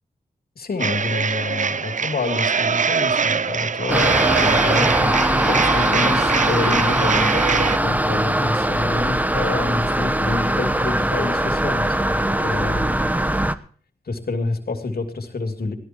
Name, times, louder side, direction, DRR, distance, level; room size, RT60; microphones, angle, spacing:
voice 1, 0.6-5.1 5.5-13.0 14.1-15.7, left 3 dB, 70° left, 5 dB, 2.8 m, -28 dB
sound 1, 0.8-7.8, right 5 dB, 50° right, 0.6 m, -23 dB
sound 2, 3.9-13.5, right 1 dB, 10° right, 1.1 m, -21 dB
17.0 x 12.5 x 4.5 m, 0.44 s
cardioid pair, 50°, 16 cm